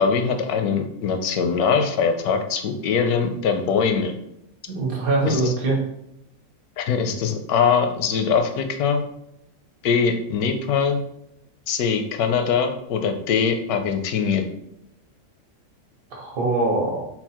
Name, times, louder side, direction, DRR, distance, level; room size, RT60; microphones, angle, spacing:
voice 1, 0.0-4.1 5.3-5.5 6.8-9.0 9.8-11.0 11.7-14.5, left 6 dB, 80° left, 6 dB, 1.1 m, -22 dB
voice 2, 4.7-5.8 16.1-17.0, right 2 dB, 70° right, -1 dB, 1.5 m, -22 dB
4.4 x 2.0 x 4.2 m, 0.79 s
omnidirectional pair, 1.6 m